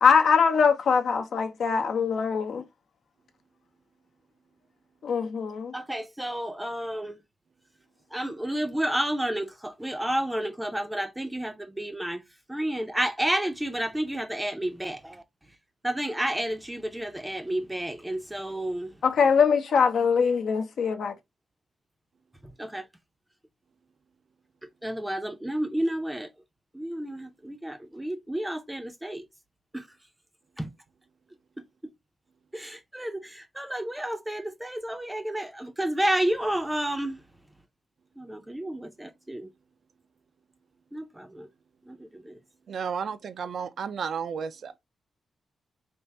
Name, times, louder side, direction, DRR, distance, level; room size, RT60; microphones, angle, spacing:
voice 1, 0.0-2.6 5.0-5.7 19.0-21.1, left 6 dB, 65° left, 0.8 m, -22 dB
voice 2, 5.7-7.2 8.1-12.2 12.5-15.2 15.8-18.9 22.4-22.9 24.8-26.3 26.7-29.2 29.7-29.9 30.6-30.7 32.5-37.2 38.2-39.5 40.9-41.5 41.9-42.4, right 1 dB, 5° right, 0.6 m, -31 dB
voice 3, 42.7-44.8, right 6 dB, 65° right, 0.4 m, -33 dB
3.5 x 2.5 x 4.1 m
wide cardioid pair, 135°, 0 cm